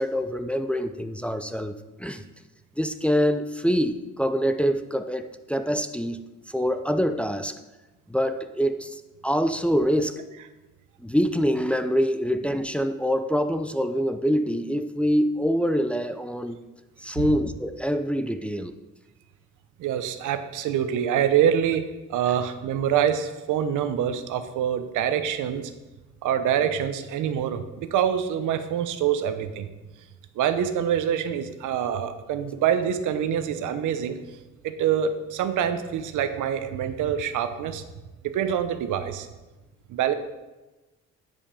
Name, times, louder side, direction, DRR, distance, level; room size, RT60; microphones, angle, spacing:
voice 1, 0.0-2.2 2.8-6.2 6.5-7.6 8.1-10.3 11.0-16.6 17.0-18.7, equal, 5° left, 8 dB, 0.5 m, -25 dB
voice 2, 19.8-25.7 26.2-29.7 30.4-34.2 34.6-37.8 38.2-39.3 39.9-40.2, right 9 dB, 85° right, 10 dB, 0.8 m, -25 dB
10.0 x 5.4 x 5.2 m, 1.1 s
cardioid pair, 90°, 30 cm